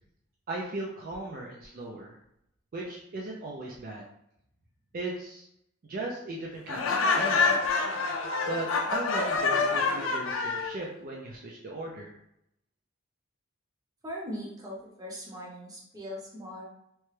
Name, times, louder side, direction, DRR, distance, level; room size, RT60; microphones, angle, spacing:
voice 1, 0.5-2.2 2.7-4.0 4.9-5.5 5.8-7.6 8.5-12.1, right 2 dB, 45° right, -2 dB, 0.4 m, -37 dB
Laughter, 6.7-10.7, left 4 dB, 80° left, 0.4 m, -27 dB
voice 2, 14.0-16.6, equal, 20° right, -4 dB, 0.7 m, -40 dB
2.9 x 2.2 x 3.1 m, 0.78 s
head